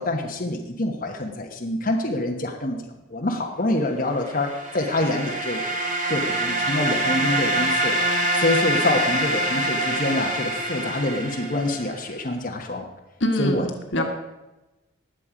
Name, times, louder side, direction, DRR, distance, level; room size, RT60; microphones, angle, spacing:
voice 1, 0.0-2.8 3.1-4.5 4.7-5.6 6.1-8.0 8.3-12.8 13.4-13.6 14.0-14.1, left 2 dB, 45° left, 1 dB, 1.2 m, -26 dB
sound 1, 4.3-12.0, right 1 dB, 40° right, 1.6 m, -25 dB
voice 2, 13.2-14.0, left 1 dB, 80° left, 4 dB, 1.7 m, -24 dB
19.5 x 7.4 x 5.1 m, 1.0 s
head